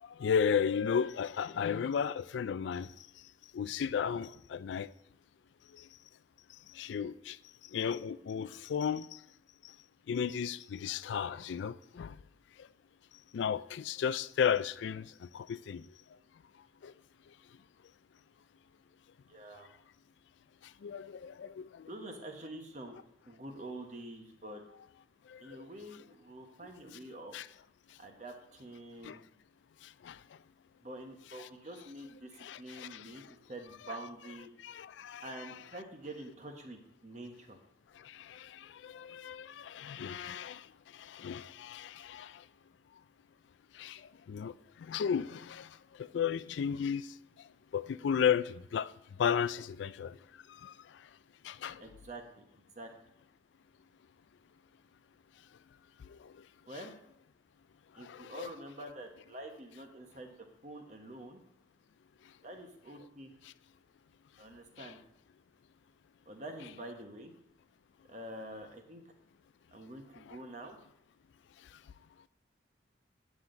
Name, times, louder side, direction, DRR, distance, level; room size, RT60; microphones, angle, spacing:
voice 1, 0.0-2.9 3.5-4.9 5.7-5.9 6.7-7.4 7.7-9.2 10.1-12.2 12.6-12.7 13.3-15.9 16.8-16.9 20.8-21.9 25.3-25.6 27.3-27.5 29.0-29.2 29.8-30.2 32.4-33.0 34.6-35.5 38.0-40.7 40.9-42.4 43.7-47.1 47.7-48.9 49.2-50.2 50.5-50.7 51.4-51.8 56.1-56.3 58.0-58.5 64.8-64.9, left 7 dB, 80° left, 0.3 m, -34 dB
voice 2, 19.3-19.7 21.9-23.0 23.3-24.6 25.4-27.4 28.0-29.2 30.8-33.2 33.5-34.5 35.2-37.6 51.8-52.5 52.7-52.9 56.7-56.9 57.9-60.3 60.6-61.4 62.4-63.3 64.4-65.0 66.3-67.3 68.1-69.0 69.7-70.8, right 1 dB, 40° right, 1.1 m, -46 dB
9.5 x 7.4 x 3.9 m
head